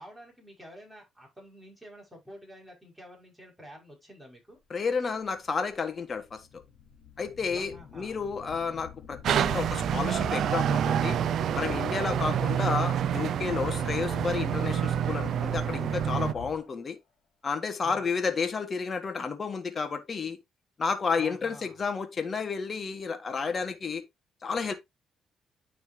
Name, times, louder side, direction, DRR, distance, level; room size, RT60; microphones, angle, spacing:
voice 1, 0.0-4.6 7.3-8.2 12.2-12.6 13.9-14.3 17.8-18.1 21.2-21.8, equal, 5° right, 5.8 m, -49 dB
voice 2, 4.7-6.4 7.2-11.2 11.5-17.0 17.4-20.4 20.8-24.0 24.4-24.7, left 5 dB, 40° left, 1.5 m, -31 dB
sound 1, 5.4-5.5 6.1-16.8, left 8 dB, 70° left, 2.5 m, -43 dB
sound 2, 9.2-16.3, right 9 dB, 70° right, 0.3 m, -28 dB
9.4 x 5.9 x 2.8 m
cardioid pair, 90°, 0 cm